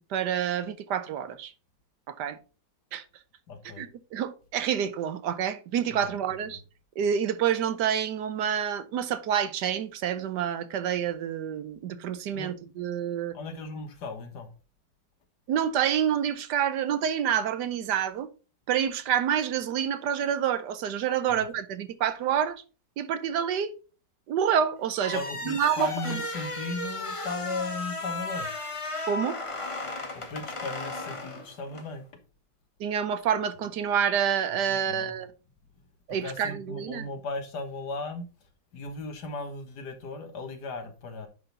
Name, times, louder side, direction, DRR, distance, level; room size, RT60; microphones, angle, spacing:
voice 1, 0.0-1.5 2.1-2.4 2.9-3.0 3.8-6.6 7.0-13.3 15.5-18.3 18.7-22.6 23.0-23.8 24.3-26.2 29.1-29.4 32.8-35.3 36.1-37.1, right 9 dB, 75° right, 1.3 m, -28 dB
voice 2, 3.5-3.8 6.0-6.2 12.3-12.5 13.3-14.5 21.3-21.4 25.1-28.5 30.2-32.0 34.7-35.1 36.2-38.3 38.7-41.3, left 3 dB, 70° left, 1.8 m, -36 dB
sound 1, 24.9-31.9, left 2 dB, 25° left, 0.8 m, -35 dB
10.0 x 3.9 x 3.8 m
omnidirectional pair, 1.9 m